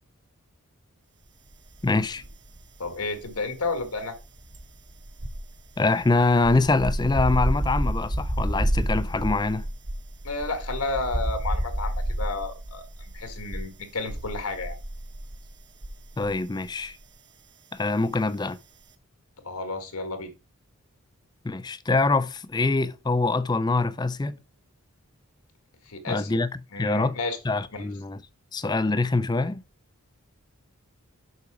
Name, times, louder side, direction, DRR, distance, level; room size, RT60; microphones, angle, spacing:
voice 1, 1.8-2.2 5.8-9.6 16.2-17.0 17.7-18.6 21.4-24.3 26.1-26.5 26.8-27.2 27.4-28.2 28.5-29.6, left 3 dB, 20° left, 0.4 m, -24 dB
sound 1, 1.8-2.6 2.9-16.4 16.7-16.9, right 1 dB, 50° right, 1.2 m, -30 dB
voice 2, 2.8-4.2 10.2-14.8 19.4-20.3 25.8-26.4 26.7-27.4 27.7-27.9, left 3 dB, 85° left, 1.7 m, -32 dB
6.8 x 5.9 x 4.9 m
head